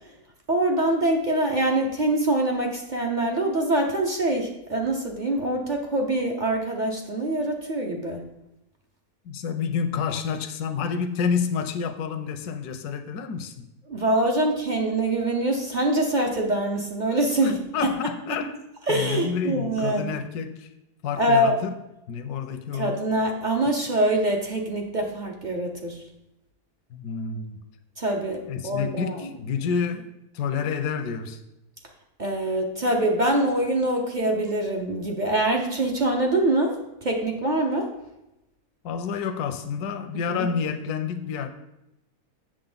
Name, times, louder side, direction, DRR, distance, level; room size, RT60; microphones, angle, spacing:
voice 1, 0.5-8.2 13.9-17.9 18.9-20.1 21.2-21.6 22.7-26.0 28.0-29.3 32.2-37.9 40.3-40.5, right 1 dB, 40° right, 1 dB, 0.8 m, -24 dB
voice 2, 9.2-13.7 17.4-18.6 18.9-20.7 21.0-21.7 22.1-23.0 26.9-27.7 28.5-31.4 38.8-41.5, left 6 dB, 80° left, 7 dB, 1.2 m, -29 dB
7.7 x 6.4 x 3.9 m, 0.88 s
omnidirectional pair, 1.7 m